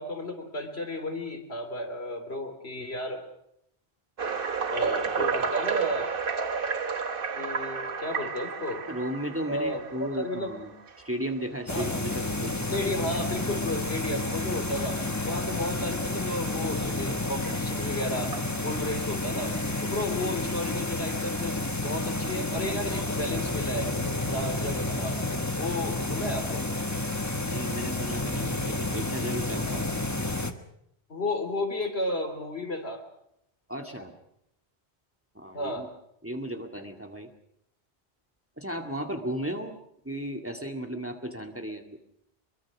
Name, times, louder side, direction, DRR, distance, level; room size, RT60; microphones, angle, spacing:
voice 1, 0.0-3.2 4.7-6.1 7.3-8.8 9.5-10.5 11.7-11.9 12.7-18.3 18.6-19.5 19.8-24.0 24.3-25.2 25.6-26.7 29.7-29.8 31.1-33.0 35.5-35.9, left 1 dB, 80° left, 5 dB, 3.7 m, -33 dB
sound 1, 4.2-11.1 11.7-11.9 12.4-12.5 13.1-13.2 14.5-14.6 17.4-17.5 18.3-19.0, right 5 dB, 60° right, 1.4 m, -32 dB
voice 2, 5.2-5.5 8.9-10.7 11.0-13.0 27.5-29.9 33.7-34.1 35.4-35.9 36.2-37.3 38.6-39.8 40.0-42.0, equal, 10° right, 4 dB, 2.1 m, -35 dB
sound 2, 11.7-30.5, left 2 dB, 15° left, 1.2 m, -30 dB
25.0 x 23.0 x 6.2 m, 0.76 s
omnidirectional pair, 1.1 m